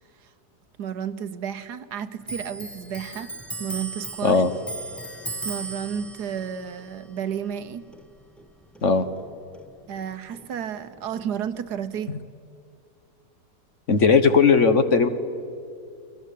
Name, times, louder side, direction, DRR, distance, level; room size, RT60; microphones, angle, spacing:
voice 1, 0.8-3.3 3.6-4.4 5.4-7.9 9.9-12.2, right 8 dB, 75° right, 12 dB, 1.5 m, -32 dB
Clock, 2.2-9.3 9.5-10.9 11.1-12.0, right 3 dB, ahead, 1.0 m, -38 dB
voice 2, 13.9-15.1, left 5 dB, 50° left, 9 dB, 1.3 m, -17 dB
29.5 x 22.0 x 8.4 m, 2.4 s
omnidirectional pair, 1.8 m